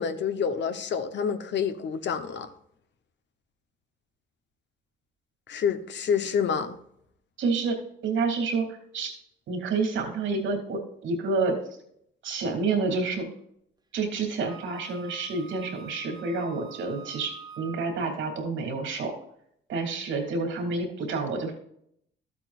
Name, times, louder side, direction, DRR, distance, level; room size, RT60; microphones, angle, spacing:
voice 1, 0.0-2.5 5.5-6.8, left 7 dB, 65° left, 1.0 m, -28 dB
voice 2, 7.4-7.7 8.0-9.1 9.5-11.5 12.2-13.3 13.9-19.1 19.7-21.5, right 4 dB, 75° right, 2.9 m, -29 dB
Wind instrument woodwind instrument, 14.5-18.0, right 7 dB, 20° right, 1.4 m, -46 dB
12.5 x 8.5 x 2.5 m
cardioid pair, 90°, 20 cm